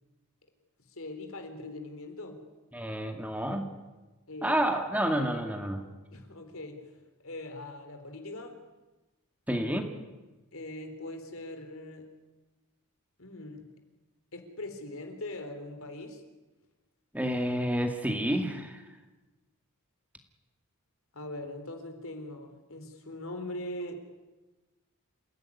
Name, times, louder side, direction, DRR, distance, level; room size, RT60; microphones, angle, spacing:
voice 1, 0.9-2.4 4.3-4.6 6.1-8.6 10.5-12.1 13.2-13.7 14.3-16.2 21.1-24.0, left 1 dB, 65° left, 6 dB, 3.7 m, -41 dB
voice 2, 2.7-3.7 4.4-5.8 9.5-9.9 17.1-18.8, equal, 5° right, 5 dB, 2.1 m, -29 dB
28.0 x 16.0 x 9.8 m, 1.1 s
head